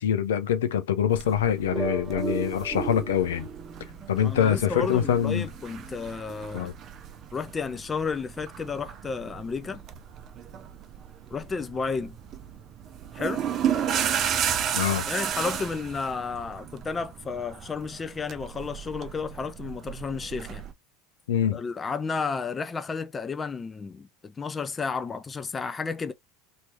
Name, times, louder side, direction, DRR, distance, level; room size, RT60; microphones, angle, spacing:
voice 1, 0.0-3.5 4.1-5.5 6.5-6.7 14.7-15.1 21.3-21.6, left 9 dB, 75° left, 0.6 m, -24 dB
sound 1, 1.1-20.7, right 9 dB, 40° right, 0.6 m, -34 dB
sound 2, 1.7-6.3, right 6 dB, 25° right, 1.2 m, -36 dB
voice 2, 4.2-6.7 7.3-9.8 11.3-12.2 13.1-13.4 15.1-20.6 21.5-26.1, left 5 dB, 25° left, 0.5 m, -32 dB
3.0 x 2.7 x 3.3 m
figure-of-eight pair, 75°, 0 cm